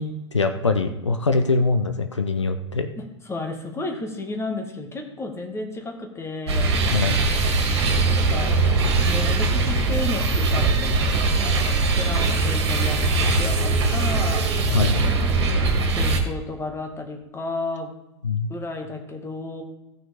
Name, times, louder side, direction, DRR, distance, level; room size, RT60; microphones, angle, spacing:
voice 1, 0.0-2.9 6.9-7.2 14.7-15.0 18.2-18.5, left 3 dB, 85° left, 8 dB, 0.7 m, -23 dB
voice 2, 3.0-6.8 8.0-8.6 9.0-10.9 12.0-14.5 15.3-15.6 15.9-17.9 18.5-19.6, left 2 dB, 15° left, 3 dB, 1.8 m, -32 dB
sound 1, 6.5-16.2, right 3 dB, 65° right, 2.0 m, -21 dB
16.0 x 6.0 x 3.5 m, 0.97 s
figure-of-eight pair, 90°, 15 cm